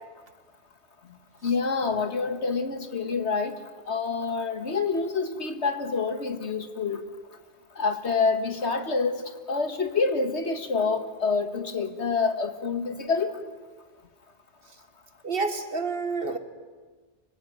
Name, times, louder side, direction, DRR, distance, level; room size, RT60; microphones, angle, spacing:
voice 1, 1.4-3.6 3.9-7.0 7.8-13.4, left 4 dB, 70° left, 8 dB, 2.0 m, -27 dB
voice 2, 15.2-16.4, right 4 dB, 55° right, 8 dB, 2.0 m, -28 dB
25.0 x 18.5 x 9.4 m, 1.4 s
omnidirectional pair, 1.2 m